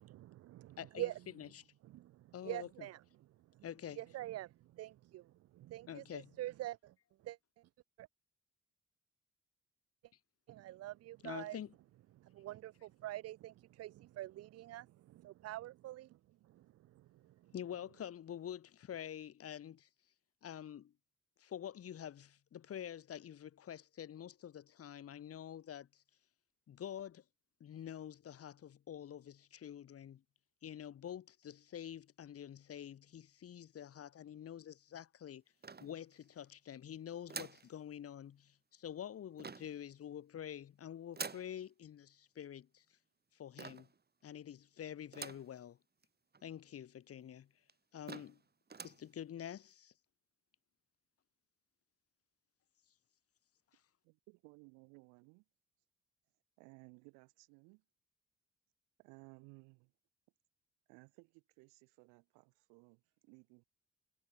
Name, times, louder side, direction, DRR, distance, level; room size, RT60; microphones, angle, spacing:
voice 1, 0.0-1.2 1.8-3.0 3.5-3.6 4.0-6.9 7.2-7.7 8.0-8.1 10.5-11.6 12.2-16.2 16.4-17.5, right 15 dB, 50° right, 0.5 m, -46 dB
voice 2, 0.8-1.1 1.4-1.6 2.3-2.7 3.6-4.0 5.9-6.4 11.2-11.7 17.5-19.9 20.4-20.9 21.4-26.0 26.7-27.2 27.6-30.2 30.6-35.4 35.8-42.8 43.3-43.9 44.2-45.8 46.4-47.5 47.9-48.4 48.8-49.9, left 10 dB, 50° left, 1.3 m, -47 dB
sound 1, 35.6-36.4 37.3-37.7 39.4-39.8 41.1-41.5 43.6-44.0 45.1-45.5 46.0-46.1 46.3-46.4 47.2-47.3 47.7-47.8 48.1-48.4 48.7-49.0, right 5 dB, 30° right, 2.4 m, -47 dB
voice 3, 54.0-55.4 56.6-57.8 59.0-59.9 60.9-63.6, right 32 dB, 80° right, 2.3 m, -60 dB
hypercardioid pair, 50°, 31 cm